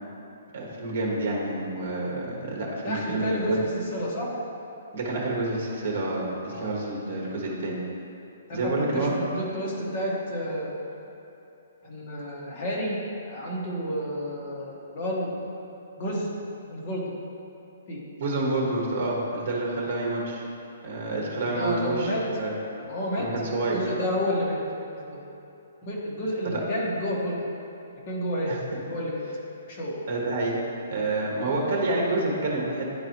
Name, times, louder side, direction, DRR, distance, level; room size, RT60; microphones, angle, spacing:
voice 1, 0.5-3.6 4.9-7.8 8.5-9.1 18.2-20.4 20.8-22.5 23.2-23.8 26.4-26.6 28.5-28.6 30.1-30.5 30.9-32.9, right 2 dB, 45° right, -2 dB, 1.2 m, -28 dB
voice 2, 2.8-4.3 6.5-6.7 7.2-7.3 8.5-10.7 11.8-13.0 13.3-15.3 16.0-16.3 16.7-17.0 17.9-18.0 21.5-22.2 22.9-23.3 23.7-24.6 25.0-25.2 25.8-27.4 28.1-28.5 28.9-29.2 29.7-30.0, equal, 35° left, -4 dB, 1.1 m, -30 dB
9.8 x 3.9 x 2.9 m, 2.9 s
hypercardioid pair, 170°, 0 cm